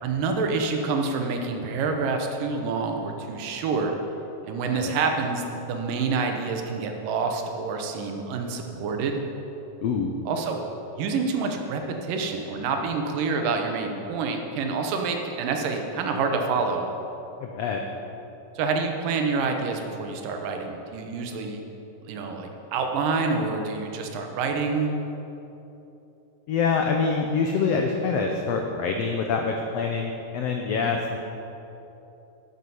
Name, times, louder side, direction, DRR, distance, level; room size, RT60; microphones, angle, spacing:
voice 1, 0.0-3.9 4.5-9.2 10.3-10.6 11.0-16.9 18.6-21.6 22.0-25.0 30.8-31.0, right 4 dB, 85° right, 3 dB, 2.6 m, -27 dB
voice 2, 9.8-10.1 17.4-17.8 26.5-31.2, left 5 dB, 85° left, 2 dB, 1.4 m, -25 dB
12.5 x 8.1 x 5.5 m, 3.0 s
omnidirectional pair, 3.8 m